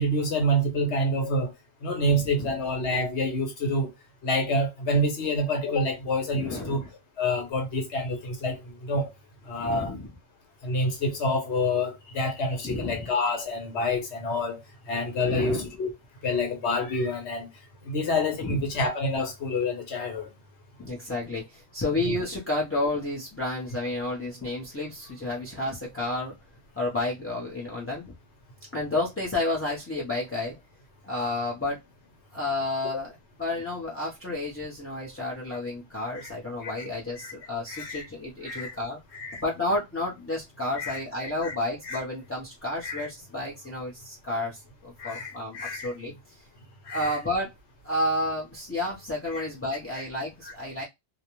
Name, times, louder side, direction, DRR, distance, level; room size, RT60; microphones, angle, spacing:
voice 1, 0.0-1.5 1.8-3.9 4.2-6.8 7.2-9.1 9.5-9.9 10.6-15.9 16.2-17.5 17.9-20.3 36.1-36.3 36.6-36.8 37.2-37.3 37.7-38.0 38.4-38.7 39.1-39.4 40.8-41.0 41.4-41.5 41.8-42.0 42.8-43.0 45.0-45.9 46.9-47.2 49.3-49.5 49.9-50.0, left 1 dB, 85° left, 1.2 m, -27 dB
voice 2, 2.1-2.5 6.3-6.8 9.6-10.1 12.6-13.1 15.2-15.7 18.4-18.6 20.8-26.3 26.7-28.1 28.7-30.6 31.0-31.8 32.3-33.1 33.4-39.0 39.4-46.4 46.9-47.5 47.8-50.8, left 2 dB, 15° left, 0.5 m, -31 dB
2.4 x 2.1 x 2.9 m
omnidirectional pair, 1.1 m